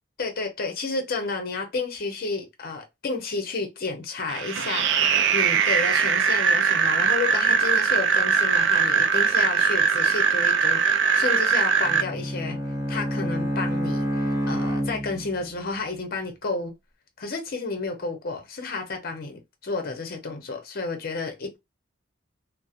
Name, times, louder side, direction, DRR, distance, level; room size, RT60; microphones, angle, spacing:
voice 1, 0.2-12.6 12.9-16.7 17.2-21.6, left 3 dB, 50° left, 0.7 m, -31 dB
sound 1, 4.3-12.0, right 6 dB, 65° right, 0.4 m, -21 dB
Bowed string instrument, 11.8-15.5, equal, 15° right, 0.6 m, -28 dB
2.7 x 2.0 x 2.4 m
head